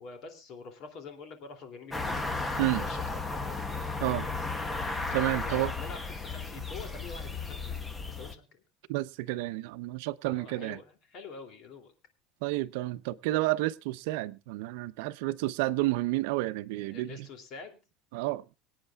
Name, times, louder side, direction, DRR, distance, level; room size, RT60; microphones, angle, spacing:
voice 1, 0.0-2.2 2.5-3.6 5.4-8.6 10.2-11.9 16.8-17.8, left 4 dB, 45° left, 2.8 m, -46 dB
sound 1, 1.9-8.3, left 3 dB, 10° left, 1.0 m, -34 dB
voice 2, 5.1-5.7 8.9-10.8 12.4-17.3 18.1-18.4, right 18 dB, 75° right, 0.7 m, -30 dB
25.0 x 8.9 x 2.4 m
cardioid pair, 155°, 0 cm